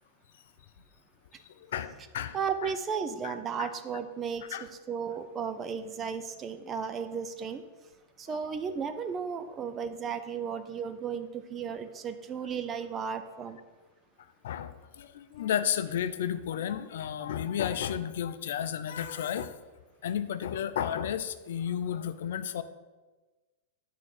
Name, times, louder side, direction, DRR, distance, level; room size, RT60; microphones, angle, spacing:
voice 1, 1.5-2.7 3.2-4.0 4.4-4.7 8.3-8.5 14.4-19.6 20.0-22.6, left 9 dB, 75° left, 12 dB, 0.5 m, -33 dB
voice 2, 2.3-7.6 8.2-13.6, right 6 dB, 25° right, 10 dB, 0.7 m, -34 dB
9.2 x 3.7 x 6.5 m, 1.2 s
hypercardioid pair, 125°, 0 cm